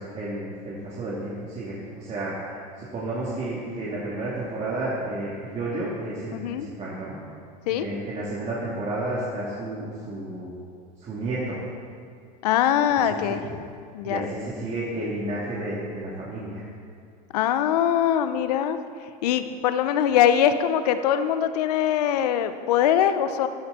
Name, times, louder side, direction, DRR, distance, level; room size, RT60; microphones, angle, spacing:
voice 1, 0.0-7.2 7.7-10.5 11.0-11.6 13.0-13.4 14.0-16.6, right 2 dB, 35° right, -7 dB, 3.1 m, -31 dB
voice 2, 6.3-6.7 7.7-7.9 12.4-13.4 13.9-14.2 17.3-18.8 19.2-23.5, left 10 dB, 80° left, 10 dB, 0.9 m, -22 dB
14.5 x 12.5 x 4.4 m, 2.3 s
hypercardioid pair, 100°, 20 cm